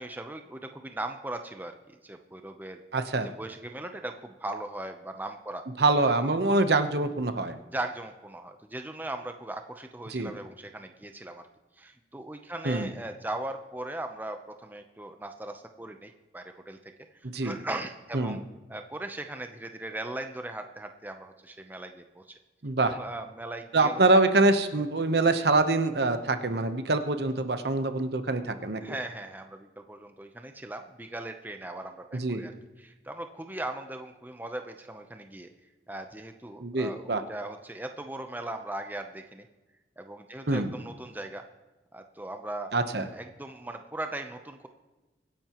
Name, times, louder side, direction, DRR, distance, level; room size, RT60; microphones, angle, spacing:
voice 1, 0.0-2.8 3.1-5.6 6.1-6.3 7.7-11.5 11.8-16.8 17.1-18.4 18.7-22.4 22.8-24.0 28.8-35.5 35.9-39.5 40.0-41.4 41.9-42.7 43.0-44.7, right 1 dB, 10° right, 6 dB, 0.7 m, -39 dB
voice 2, 2.9-3.3 5.8-7.6 10.1-10.3 12.6-12.9 17.3-17.6 18.1-18.4 22.6-22.9 23.7-28.8 32.1-32.4 36.6-37.2 40.5-40.7 42.7-43.1, right 2 dB, 60° right, 8 dB, 1.0 m, -25 dB
24.0 x 10.5 x 3.0 m, 1.1 s
head